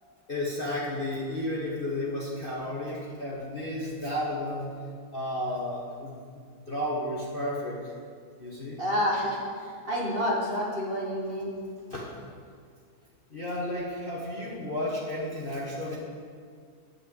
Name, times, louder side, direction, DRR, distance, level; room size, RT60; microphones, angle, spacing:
voice 1, 0.3-4.7 5.1-6.1 6.7-7.9 8.4-8.8 11.9-12.1 13.3-16.0, left 1 dB, 30° left, -4 dB, 1.2 m, -32 dB
voice 2, 8.8-11.5, equal, 30° right, -4 dB, 1.5 m, -29 dB
10.0 x 5.9 x 7.9 m, 2.2 s
omnidirectional pair, 2.1 m